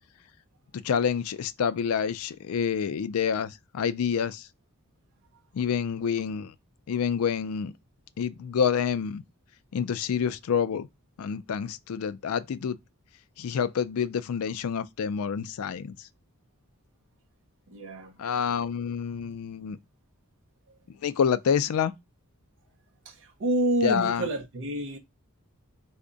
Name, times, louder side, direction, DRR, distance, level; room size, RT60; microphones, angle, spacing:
voice 1, 0.7-4.5 5.5-6.5 6.9-7.7 8.2-9.2 9.7-10.9 11.2-12.8 13.4-16.1 18.2-19.8 21.0-21.9 23.8-24.3, left 7 dB, 70° left, 0.4 m, -28 dB
voice 2, 17.7-18.2 20.7-20.8 23.0-25.0, right 1 dB, 60° right, 0.6 m, -28 dB
3.5 x 2.1 x 3.8 m
head